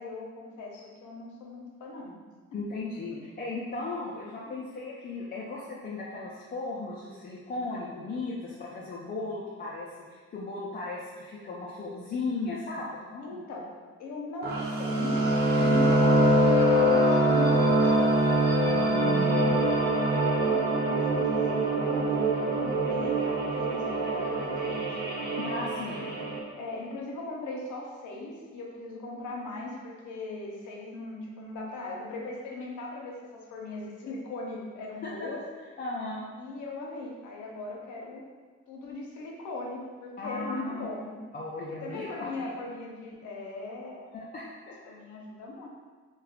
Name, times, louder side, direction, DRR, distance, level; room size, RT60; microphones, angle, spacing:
voice 1, 0.0-2.2 3.8-3.9 4.5-4.7 13.2-13.7 14.0-15.2 15.5-18.1 19.0-24.8 26.2-26.3 26.5-35.4 36.4-38.3 38.7-41.3 41.8-44.1 44.9-45.7, left 2 dB, 75° left, -2 dB, 0.7 m, -39 dB
voice 2, 2.5-13.4 18.6-19.5 25.4-26.1 35.2-35.3 35.8-36.2 40.2-40.9 41.3-42.5 44.1-44.9, left 3 dB, 30° left, -5 dB, 0.4 m, -36 dB
sound 1, 14.4-26.4, right 1 dB, 35° right, 0.6 m, -24 dB
2.3 x 2.2 x 3.5 m, 1.5 s
cardioid pair, 90°, 30 cm